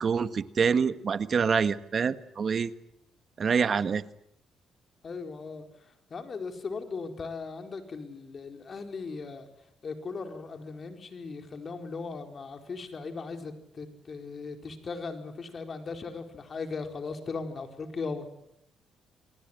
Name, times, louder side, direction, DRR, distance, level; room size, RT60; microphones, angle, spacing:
voice 1, 0.0-2.7 3.4-4.0, right 6 dB, 45° right, 13 dB, 1.4 m, -26 dB
voice 2, 5.0-5.6 6.1-9.5 9.8-18.3, left 4 dB, 45° left, 6 dB, 4.5 m, -38 dB
28.0 x 19.5 x 9.0 m, 0.75 s
cardioid pair, 90°, 0 cm